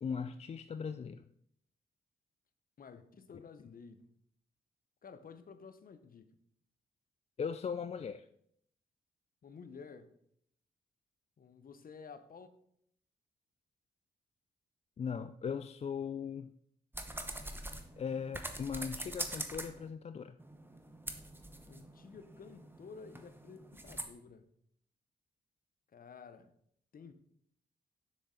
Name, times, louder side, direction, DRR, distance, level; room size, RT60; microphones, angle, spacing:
voice 1, 0.0-1.2 7.4-8.3 15.0-16.5 18.0-20.4, left 6 dB, 35° left, 0.4 m, -39 dB
voice 2, 2.8-4.1 5.0-6.3 9.4-10.1 11.4-12.5 21.7-24.5 25.9-26.5 26.9-27.1, left 5 dB, 50° left, 0.8 m, -52 dB
sound 1, 16.9-19.9 20.4-24.0, right 1 dB, 10° right, 1.0 m, -44 dB
6.6 x 6.5 x 3.9 m
cardioid pair, 60°, 18 cm